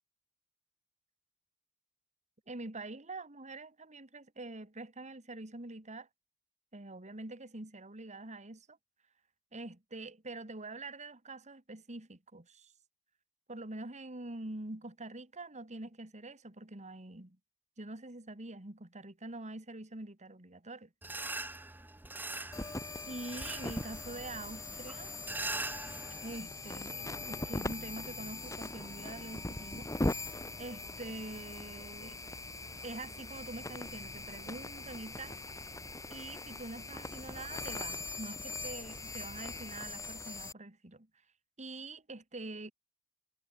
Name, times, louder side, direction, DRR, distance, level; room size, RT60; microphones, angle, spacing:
voice 1, 2.5-6.1 6.7-8.8 9.5-12.7 13.5-17.4 17.8-20.9 23.1-25.1 26.2-32.2 32.8-35.4 36.1-41.1 41.6-42.7, right 2 dB, 35° right, 2.4 m, -45 dB
sound 1, 21.0-26.4, right 2 dB, 10° right, 0.7 m, -42 dB
sound 2, 22.5-40.5, left 2 dB, 15° left, 1.8 m, -41 dB
head